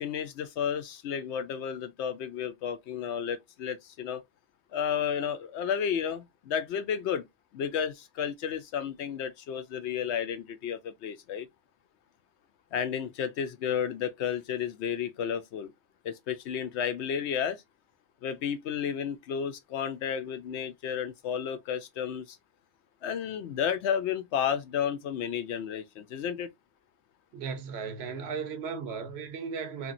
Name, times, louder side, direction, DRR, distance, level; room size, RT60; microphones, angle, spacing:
voice 1, 0.0-4.2 4.7-7.3 7.5-11.5 12.7-15.7 16.0-17.6 18.2-22.2 23.0-26.5, left 8 dB, 75° left, 0.8 m, -32 dB
voice 2, 27.3-29.9, right 5 dB, 70° right, 0.9 m, -36 dB
2.8 x 2.5 x 2.5 m
omnidirectional pair, 1.2 m